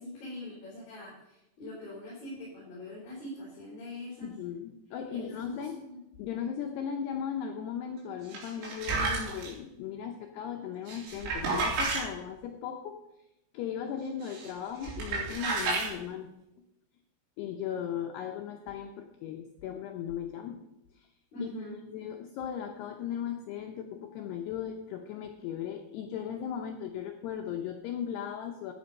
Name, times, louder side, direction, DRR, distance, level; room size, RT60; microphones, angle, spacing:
voice 1, 0.0-4.3 5.1-6.0 21.3-21.8, left 2 dB, 50° left, -6 dB, 5.4 m, -42 dB
voice 2, 4.2-5.8 6.2-13.0 13.5-16.3 17.4-20.6 21.0-21.1 21.4-21.5 21.9-28.7, left 8 dB, 85° left, 4 dB, 2.3 m, -37 dB
sound 1, 8.3-9.5 10.9-12.0 14.2-14.5 14.8-15.9, right 3 dB, 80° right, 6.2 m, -31 dB
13.0 x 9.3 x 5.3 m, 0.90 s
omnidirectional pair, 5.8 m